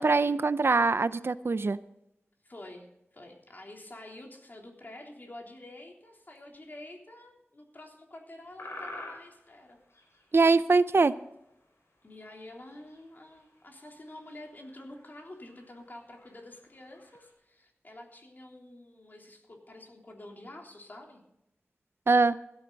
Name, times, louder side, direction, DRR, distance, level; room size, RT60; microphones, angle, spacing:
voice 1, 0.0-1.8 10.3-11.1 22.1-22.4, right 3 dB, 65° right, 14 dB, 0.6 m, -23 dB
voice 2, 2.4-9.8 12.0-21.2, left 1 dB, 45° left, 1 dB, 3.5 m, -48 dB
sound 1, 8.5-11.7 12.0-12.1 12.3-17.3, left 2 dB, 80° left, 5.7 m, -49 dB
16.5 x 12.5 x 4.0 m, 0.84 s
wide cardioid pair, 80°, 4 cm